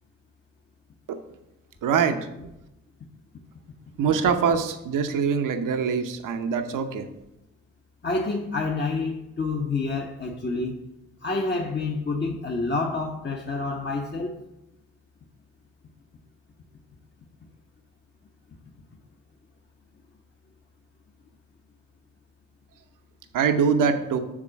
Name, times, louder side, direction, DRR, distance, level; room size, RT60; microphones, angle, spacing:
voice 1, 1.8-2.2 4.0-7.0 23.3-24.2, right 6 dB, 70° right, 0.9 m, -23 dB
voice 2, 8.0-10.9 11.2-14.4, left 3 dB, 30° left, 1.0 m, -28 dB
7.3 x 3.7 x 6.2 m
supercardioid pair, 50°, 33 cm